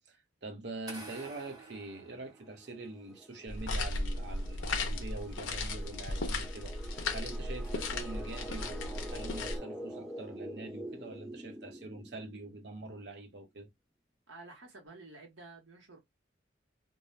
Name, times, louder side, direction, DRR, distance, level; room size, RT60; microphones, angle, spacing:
voice 1, 0.0-13.7, right 2 dB, 60° right, 0.7 m, -44 dB
sound 1, 0.9-3.0, right 3 dB, 20° right, 1.0 m, -49 dB
sound 2, 2.3-12.8, right 1 dB, ahead, 0.4 m, -46 dB
sound 3, 3.5-9.6, left 2 dB, 85° left, 0.7 m, -36 dB
voice 2, 14.3-16.0, right 3 dB, 85° right, 1.0 m, -51 dB
2.6 x 2.1 x 3.1 m
head